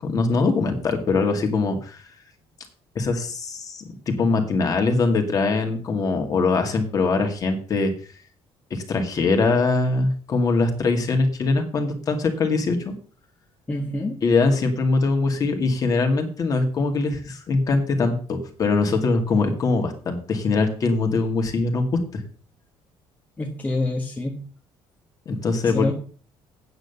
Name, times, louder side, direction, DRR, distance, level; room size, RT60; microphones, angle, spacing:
voice 1, 0.0-2.0 3.0-7.9 8.7-12.9 14.2-22.2 25.3-25.9, left 3 dB, 35° left, 5 dB, 2.2 m, -22 dB
voice 2, 13.7-14.2 23.4-24.4 25.7-25.9, left 2 dB, 15° left, 1 dB, 1.4 m, -26 dB
9.0 x 7.8 x 6.8 m, 0.42 s
cardioid pair, 155°, 10 cm